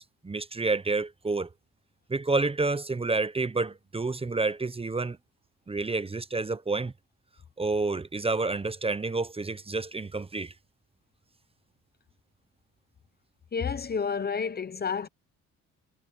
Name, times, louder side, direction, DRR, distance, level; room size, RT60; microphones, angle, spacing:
voice 1, 0.0-1.5 2.1-5.2 5.7-6.9 7.6-10.5, right 3 dB, 20° right, 0.9 m, -29 dB
voice 2, 13.5-15.1, left 6 dB, 30° left, 0.9 m, -30 dB
cardioid pair, 90°, 30 cm